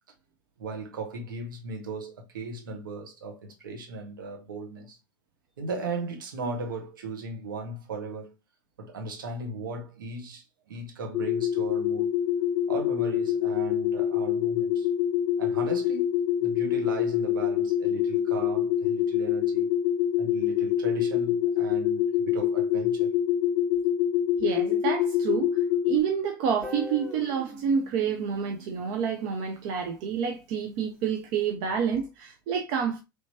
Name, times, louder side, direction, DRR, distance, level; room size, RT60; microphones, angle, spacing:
voice 1, 0.6-5.0 5.6-8.3 8.8-12.1 12.7-14.9 15.4-16.2 16.4-19.7 20.2-23.1, right 2 dB, 75° right, 1.2 m, -37 dB
sound 1, 11.1-26.0, left 10 dB, 30° left, 0.4 m, -26 dB
voice 2, 24.4-33.0, right 7 dB, 50° right, 0.6 m, -28 dB
Guitar, 26.6-29.6, left 1 dB, ahead, 1.3 m, -42 dB
3.3 x 2.9 x 2.8 m
figure-of-eight pair, 85°, 11 cm